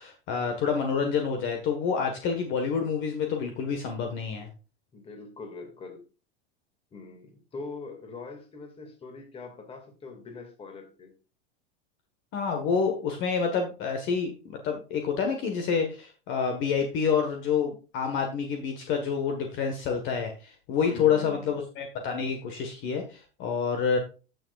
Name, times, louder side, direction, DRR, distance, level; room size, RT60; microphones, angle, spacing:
voice 1, 0.0-4.5 12.3-24.0, left 6 dB, 40° left, 4 dB, 1.6 m, -28 dB
voice 2, 4.9-6.0 6.9-11.1 20.8-21.5, left 3 dB, 20° left, 5 dB, 2.3 m, -42 dB
15.0 x 6.6 x 2.5 m, 0.33 s
supercardioid pair, 145°, 29 cm